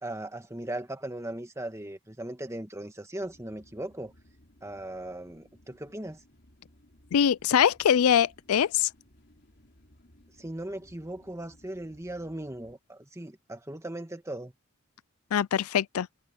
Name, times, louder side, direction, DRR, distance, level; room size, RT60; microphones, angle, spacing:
voice 1, 0.0-4.1 4.6-6.2 10.4-14.5, right 1 dB, 15° right, 1.6 m, -38 dB
sound 1, 3.2-12.8, left 1 dB, 50° left, 3.6 m, -60 dB
voice 2, 7.1-8.9 15.3-16.1, left 8 dB, 85° left, 0.4 m, -23 dB
head